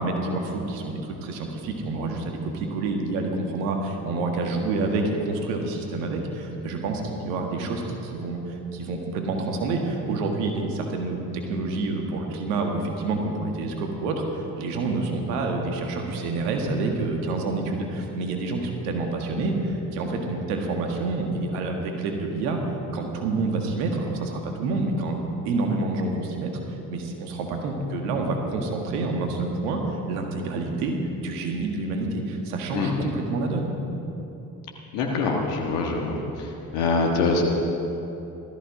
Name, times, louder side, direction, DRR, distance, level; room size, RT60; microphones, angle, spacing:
voice 1, 0.0-22.6 22.9-25.2 25.4-26.5 26.9-33.7, right 3 dB, 85° right, 2 dB, 1.8 m, -28 dB
voice 2, 34.9-36.5 36.7-37.4, left 4 dB, 85° left, 0 dB, 1.5 m, -24 dB
16.5 x 13.5 x 4.9 m, 2.9 s
hypercardioid pair, 45°, 44 cm